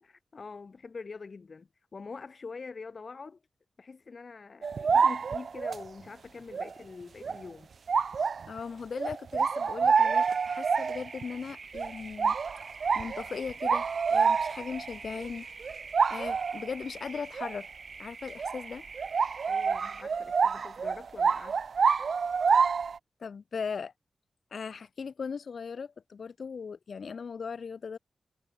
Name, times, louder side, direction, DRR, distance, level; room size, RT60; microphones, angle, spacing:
voice 1, 0.0-3.4 3.8-7.7 19.5-21.6, left 4 dB, 55° left, 0.8 m, -45 dB
sound 1, 4.6-5.9 6.5-6.7 7.2-7.4 7.9-8.6 9.0-11.2 11.7-11.9 12.2-14.9 15.2-15.3 15.6-16.7 17.4-17.6 18.4-18.6 19.0-23.0, right 5 dB, 75° right, 0.3 m, -27 dB
voice 2, 8.5-12.4 12.9-15.5 16.1-17.7 18.0-18.8 23.2-23.9 24.5-28.0, left 5 dB, 75° left, 1.2 m, -38 dB
sound 2, 10.0-20.0, right 4 dB, 60° right, 0.8 m, -46 dB
cardioid pair, 70°, 0 cm